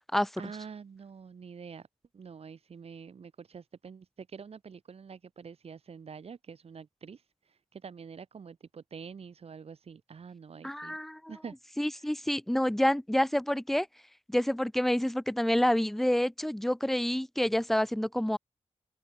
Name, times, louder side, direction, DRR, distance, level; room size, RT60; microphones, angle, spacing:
voice 1, 0.4-1.9 2.1-11.0 11.3-11.6 11.9-12.1, right 6 dB, 60° right, 4.0 m, -46 dB
voice 2, 10.6-11.3 11.8-13.9 14.3-18.4, left 1 dB, ahead, 0.4 m, -28 dB
wide cardioid pair, 170°, 12 cm